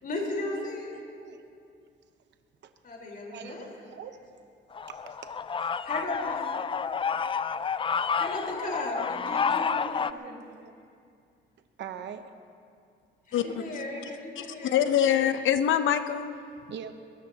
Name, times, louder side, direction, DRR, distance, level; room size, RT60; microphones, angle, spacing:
voice 1, 0.0-0.9 2.8-3.6 5.8-6.4 8.2-10.4 13.3-15.1, left 2 dB, 45° left, -2 dB, 4.4 m, -36 dB
voice 2, 0.9-1.4 2.6-2.7 3.3-4.2 4.9-5.3 8.6-8.8 10.1-10.7 11.8-12.3 13.9-14.2 16.7-16.9, right 8 dB, 65° right, 7 dB, 1.0 m, -43 dB
sound 1, 4.7-10.1, left 6 dB, 25° left, 0.4 m, -30 dB
voice 3, 13.3-13.8 14.4-16.3, left 10 dB, 75° left, 10 dB, 0.9 m, -25 dB
22.5 x 19.5 x 2.9 m, 2.3 s
cardioid pair, 90°, 20 cm